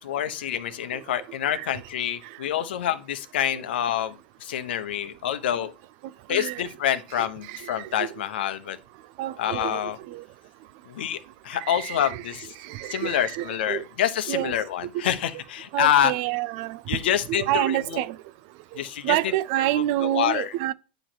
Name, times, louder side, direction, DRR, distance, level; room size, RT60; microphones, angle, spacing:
voice 1, 0.0-5.7 6.3-8.8 9.4-10.0 10.9-12.5 12.9-16.1 16.9-18.0 18.7-19.2 20.0-20.5, left 10 dB, 75° left, 0.9 m, -27 dB
voice 2, 6.3-6.6 7.2-8.1 9.2-9.8 10.1-10.2 11.6-12.2 12.7-13.8 14.3-14.5 15.7-16.8 17.4-18.1 19.0-20.7, right 14 dB, 55° right, 0.5 m, -28 dB
8.8 x 3.1 x 4.3 m
hypercardioid pair, 120°, 6 cm